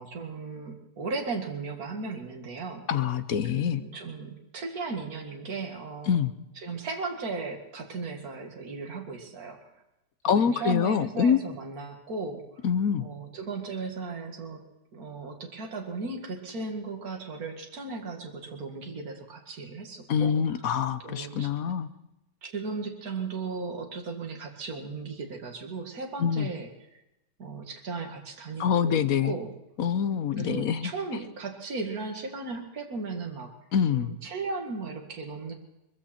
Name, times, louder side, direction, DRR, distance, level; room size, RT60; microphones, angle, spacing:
voice 1, 0.0-2.9 3.5-6.1 6.6-9.6 10.3-12.4 13.0-14.6 14.9-20.7 21.0-21.5 22.4-26.7 27.4-29.5 30.4-33.5 33.9-35.5, right 4 dB, 55° right, 2 dB, 2.5 m, -36 dB
voice 2, 2.9-3.8 6.1-6.3 10.2-11.4 12.6-13.1 20.1-21.9 26.2-26.5 28.6-29.3 29.8-30.9 33.7-34.1, left 7 dB, 60° left, 12 dB, 1.2 m, -25 dB
21.5 x 15.5 x 4.4 m, 0.92 s
omnidirectional pair, 1.9 m